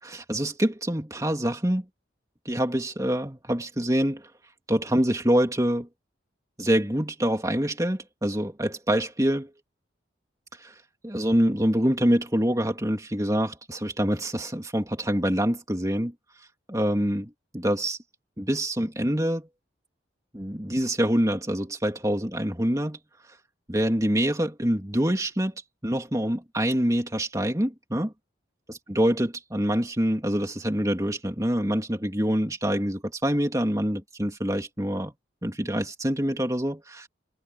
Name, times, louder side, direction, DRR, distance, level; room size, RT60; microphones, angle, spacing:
voice 1, 0.0-1.8 2.4-4.3 4.7-5.9 6.6-9.5 10.5-10.7 11.0-16.1 16.7-18.0 18.4-19.5 20.3-23.0 23.7-28.1 28.7-35.1 35.4-37.1, equal, 15° right, 2.9 m, -25 dB
head